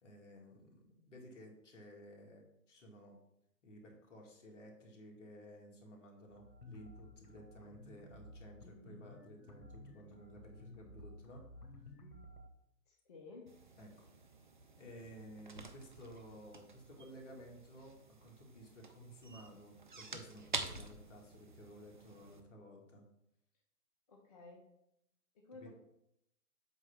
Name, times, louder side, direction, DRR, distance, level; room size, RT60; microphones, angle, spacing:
voice 1, 0.0-3.2 3.6-11.5 13.8-14.1 14.8-23.0 25.6-25.7, equal, 50° left, 1 dB, 2.0 m, -55 dB
sound 1, 6.3-12.5, left 1 dB, 70° left, 1.9 m, -55 dB
voice 2, 12.9-13.5 24.1-24.7 25.3-25.7, left 3 dB, 25° left, -1 dB, 0.8 m, -54 dB
sound 2, 13.5-22.4, right 4 dB, 35° right, 0.4 m, -48 dB
8.0 x 3.1 x 5.8 m, 0.79 s
figure-of-eight pair, 140°, 48 cm